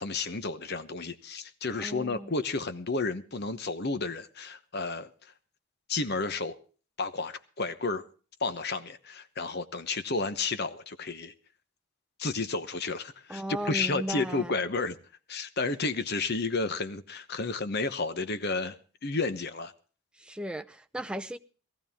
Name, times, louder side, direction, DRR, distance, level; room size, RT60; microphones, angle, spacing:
voice 1, 0.0-5.3 5.9-6.6 7.0-8.0 8.4-11.3 12.2-15.0 15.3-18.8 19.0-19.7, left 3 dB, 45° left, 1.0 m, -31 dB
voice 2, 1.8-2.3 13.3-14.5 20.2-21.4, right 1 dB, 5° right, 0.6 m, -36 dB
19.0 x 14.5 x 3.6 m
head